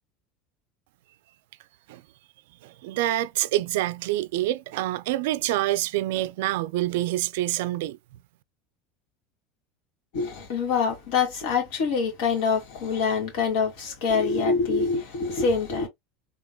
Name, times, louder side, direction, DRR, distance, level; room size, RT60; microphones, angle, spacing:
voice 1, 2.6-8.0, right 15 dB, 80° right, 0.4 m, -26 dB
voice 2, 10.1-15.9, left 5 dB, 65° left, 2.7 m, -25 dB
3.7 x 3.7 x 2.3 m
supercardioid pair, 160°, 0 cm